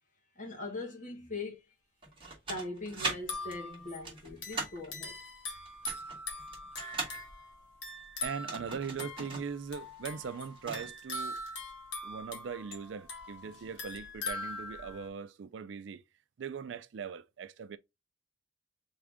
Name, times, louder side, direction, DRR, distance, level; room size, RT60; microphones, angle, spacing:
voice 1, 0.3-1.6 2.5-5.2, left 2 dB, 45° left, 1.5 m, -41 dB
sound 1, 2.0-3.2 3.5-4.9 5.7-7.2 8.3-9.5 9.8-9.9 10.3-10.9, right 3 dB, 30° right, 1.6 m, -39 dB
sound 2, 3.2-15.1, left 2 dB, 70° left, 1.4 m, -42 dB
voice 2, 8.2-11.4 12.0-16.0 16.4-17.8, right 6 dB, 70° right, 0.4 m, -40 dB
3.6 x 3.5 x 3.5 m
head